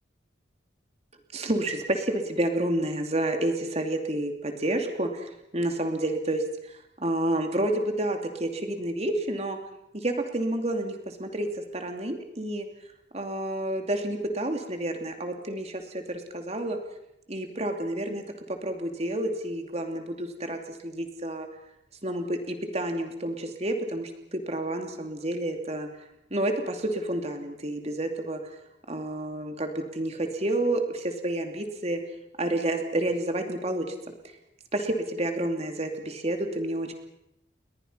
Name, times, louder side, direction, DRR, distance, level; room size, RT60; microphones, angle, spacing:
voice 1, 1.3-6.4 7.0-9.6 9.9-12.7 13.1-16.8 17.3-18.2 18.6-21.5 22.0-25.9 26.3-28.4 28.9-32.0 32.4-33.8 34.7-36.9, right 1 dB, 35° right, 5 dB, 2.9 m, -29 dB
30.0 x 22.5 x 5.7 m, 0.84 s
head